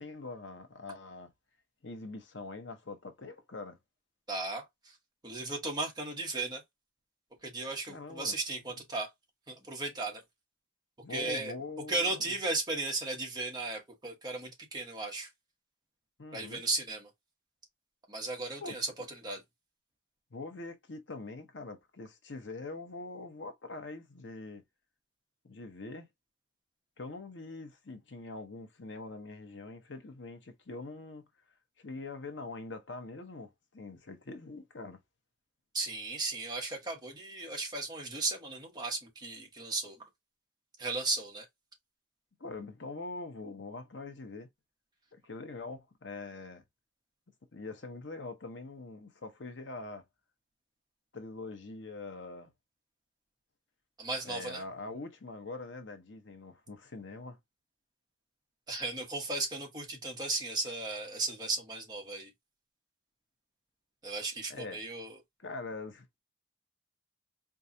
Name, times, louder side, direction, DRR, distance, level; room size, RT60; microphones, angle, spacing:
voice 1, 0.0-1.3 1.8-3.8 7.9-8.4 8.7-8.8 11.0-12.3 16.2-16.6 18.6-18.7 20.3-24.6 25.4-26.1 27.0-31.3 31.8-35.0 42.4-44.5 45.1-46.6 47.5-50.0 51.1-52.5 54.2-57.4 64.5-64.8 65.4-66.2, left 3 dB, 70° left, 0.9 m, -43 dB
voice 2, 4.3-4.9 5.2-6.6 7.4-9.1 9.5-10.2 11.1-11.5 11.9-15.3 16.3-17.1 18.1-18.9 19.2-19.4 35.7-40.0 40.8-41.5 54.0-54.6 58.7-62.3 64.0-65.2, right 3 dB, 20° right, 1.3 m, -35 dB
4.6 x 2.4 x 2.7 m
head